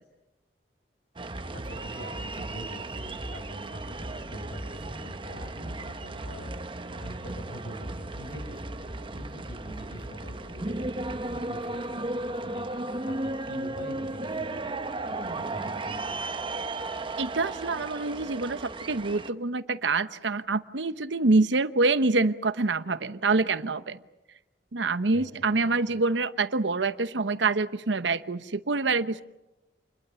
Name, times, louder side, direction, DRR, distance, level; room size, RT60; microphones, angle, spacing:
sound 1, 1.2-19.3, right 2 dB, 30° right, 1.0 m, -35 dB
voice 1, 1.5-16.5 25.1-26.0, equal, 75° left, 5 dB, 7.2 m, -44 dB
voice 2, 17.2-18.6 18.9-24.0 24.7-29.2, right 3 dB, 80° right, 13 dB, 0.9 m, -26 dB
28.5 x 21.5 x 7.0 m, 1.0 s
head